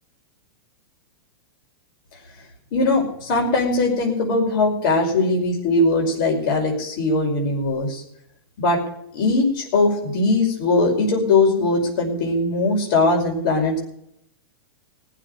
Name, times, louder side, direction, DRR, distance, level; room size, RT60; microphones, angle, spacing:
voice 1, 2.7-8.0 8.6-8.8 9.1-13.8, left 2 dB, 60° left, 0 dB, 5.5 m, -20 dB
20.0 x 7.7 x 6.7 m, 0.74 s
hypercardioid pair, 130°, 12 cm